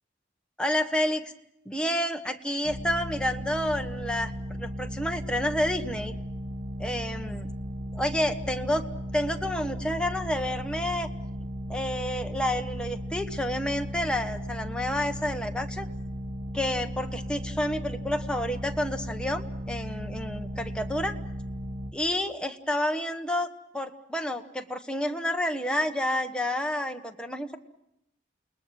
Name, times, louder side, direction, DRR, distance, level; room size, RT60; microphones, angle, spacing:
voice 1, 0.6-1.3 1.6-6.1 6.8-7.5 7.9-8.9 9.1-11.1 11.7-15.9 16.5-21.2 21.9-27.6, left 1 dB, 5° left, 4 dB, 1.3 m, -29 dB
sound 1, 2.6-21.9, equal, 85° right, 1.9 m, -36 dB
29.5 x 20.0 x 6.2 m, 0.81 s
head